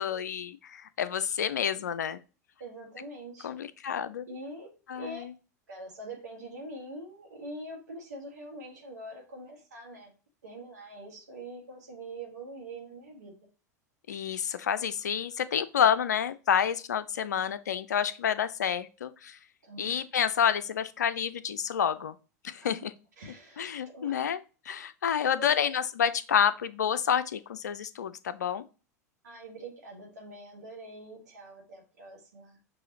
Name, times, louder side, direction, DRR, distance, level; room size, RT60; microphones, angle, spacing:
voice 1, 0.0-2.2 3.4-4.2 4.9-5.3 14.1-19.4 19.8-22.1 22.4-22.9 23.6-24.4 24.7-28.6, left 8 dB, 80° left, 0.4 m, -29 dB
voice 2, 2.6-3.6 4.3-5.2 5.7-10.1 10.4-13.3 19.6-20.0 22.6-24.3 25.4-25.5 29.2-32.6, right 1 dB, 80° right, 1.6 m, -44 dB
6.2 x 2.7 x 2.8 m
hypercardioid pair, 85°, 9 cm